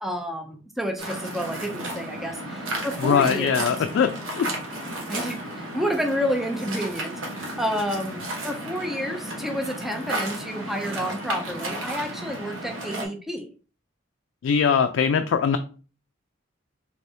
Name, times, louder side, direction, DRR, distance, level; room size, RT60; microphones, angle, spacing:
voice 1, 0.0-3.7 5.1-7.2 7.6-13.5, equal, ahead, 3 dB, 0.4 m, -30 dB
Waves surf, 1.0-13.0, right 1 dB, 85° right, 1.0 m, -33 dB
voice 2, 3.0-4.5 14.4-15.6, left 6 dB, 75° left, 7 dB, 0.3 m, -21 dB
3.4 x 3.3 x 2.7 m, 0.37 s
head